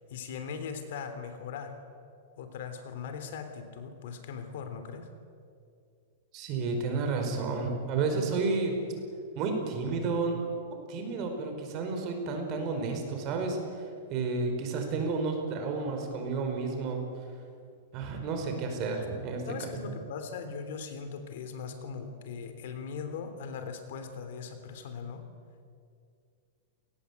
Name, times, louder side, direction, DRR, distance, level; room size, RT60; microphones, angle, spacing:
voice 1, 0.1-1.8 2.4-5.1 19.5-25.2, left 6 dB, 60° left, 8 dB, 3.3 m, -39 dB
voice 2, 6.3-8.7 9.3-10.4 10.9-17.0 17.9-19.7, right 4 dB, 30° right, 4 dB, 5.0 m, -31 dB
29.0 x 19.5 x 8.4 m, 2.3 s
supercardioid pair, 165°, 0 cm